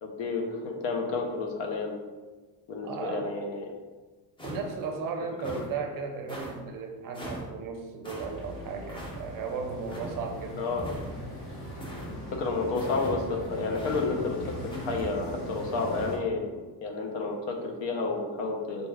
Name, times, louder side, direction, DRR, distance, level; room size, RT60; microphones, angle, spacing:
voice 1, 0.0-2.0 2.7-3.7 5.5-5.6 10.5-10.9 12.3-14.4 14.6-18.9, left 3 dB, 75° left, 2 dB, 0.8 m, -31 dB
voice 2, 2.8-3.5 4.4-10.6, right 5 dB, 50° right, 4 dB, 0.5 m, -35 dB
sound 1, 4.4-4.9 5.4-5.7 6.3-6.5 7.1-7.5 8.0-8.3 8.9-9.2 9.9-10.2 10.8-11.3 11.8-12.1 12.7-13.2 13.7-14.0 14.7-15.1, equal, 10° left, 0.5 m, -40 dB
sound 2, 8.2-16.2, left 1 dB, 40° left, 1.0 m, -40 dB
4.1 x 2.3 x 3.2 m, 1.3 s
cardioid pair, 155°, 44 cm